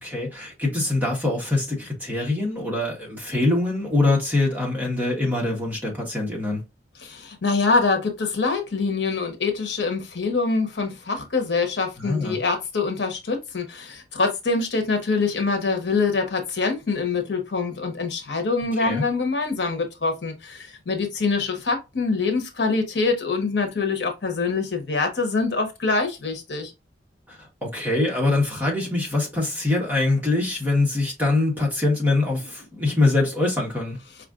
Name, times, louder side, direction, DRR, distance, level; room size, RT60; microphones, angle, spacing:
voice 1, 0.0-6.6 12.0-12.4 18.8-19.0 27.3-34.0, left 2 dB, 10° right, 1.1 m, -23 dB
voice 2, 7.0-26.7, left 4 dB, 70° left, 0.9 m, -25 dB
4.9 x 2.4 x 2.4 m
head